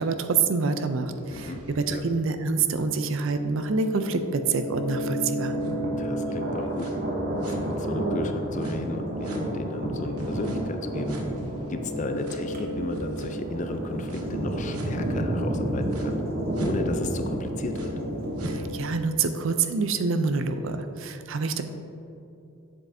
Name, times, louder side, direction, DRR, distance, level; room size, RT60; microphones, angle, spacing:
voice 1, 0.0-5.6 18.4-21.6, right 4 dB, 60° right, 8 dB, 0.4 m, -26 dB
sound 1, 1.2-8.1 8.6-14.3 14.7-14.9 15.9-16.0 16.6-16.7 17.2-19.0, equal, 85° right, 0.9 m, -36 dB
voice 2, 1.3-1.6 1.9-2.0 6.0-6.9 7.5-11.2 11.7-16.2 16.6-17.9, left 2 dB, 35° left, 7 dB, 0.4 m, -34 dB
Thunder, 5.4-18.6, right 1 dB, 40° right, 0.8 m, -31 dB
7.5 x 7.4 x 2.6 m, 2.7 s
head